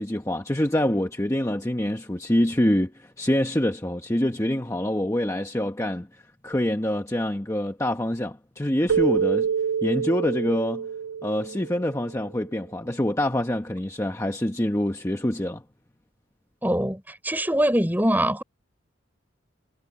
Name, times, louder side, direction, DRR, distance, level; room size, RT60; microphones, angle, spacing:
voice 1, 0.0-9.5 9.8-10.9 11.2-15.6, left 1 dB, 15° left, 1.0 m, -25 dB
Keyboard (musical), 8.9-12.1, right 7 dB, 65° right, 1.2 m, -26 dB
voice 2, 16.6-18.4, right 1 dB, 10° right, 4.6 m, -23 dB
head